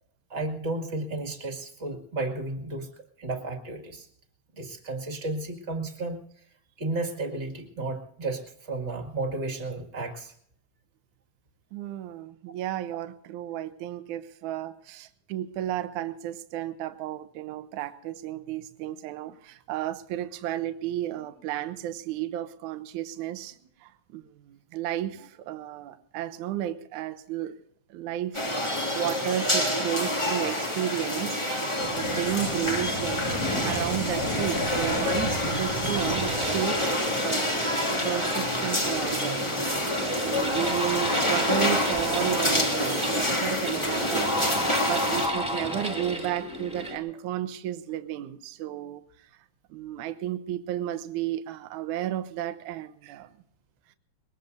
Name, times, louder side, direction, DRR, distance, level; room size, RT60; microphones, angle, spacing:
voice 1, 0.3-2.9 3.2-4.1 4.5-6.2 6.8-10.3 28.8-29.0, right 2 dB, 25° right, 3 dB, 1.9 m, -33 dB
voice 2, 11.7-27.6 27.9-28.4 28.9-36.9 37.2-37.6 38.0-49.3 49.7-53.3 53.9-54.0, right 12 dB, 75° right, 10 dB, 2.2 m, -33 dB
sound 1, 28.3-45.3, left 1 dB, 15° left, 1.4 m, -27 dB
sound 2, 31.7-38.5, equal, 55° left, 6.0 m, -35 dB
sound 3, 35.9-47.0, equal, ahead, 1.9 m, -32 dB
22.0 x 20.0 x 2.6 m, 0.67 s
omnidirectional pair, 3.6 m